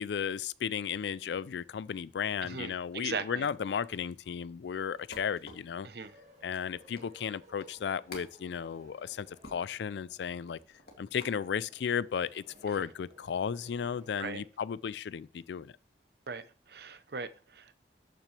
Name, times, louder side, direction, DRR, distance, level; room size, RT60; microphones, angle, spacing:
voice 1, 0.0-5.9 6.4-10.6 11.0-15.7, left 7 dB, 80° left, 0.3 m, -34 dB
voice 2, 2.4-3.5 5.8-6.1 14.2-14.4 16.3-16.4 16.7-17.7, right 4 dB, 65° right, 0.7 m, -39 dB
sound 1, 3.9-11.4 11.9-12.5, left 2 dB, 60° left, 2.5 m, -53 dB
sound 2, 6.0-14.4, equal, 40° right, 1.7 m, -60 dB
13.5 x 6.0 x 3.2 m
head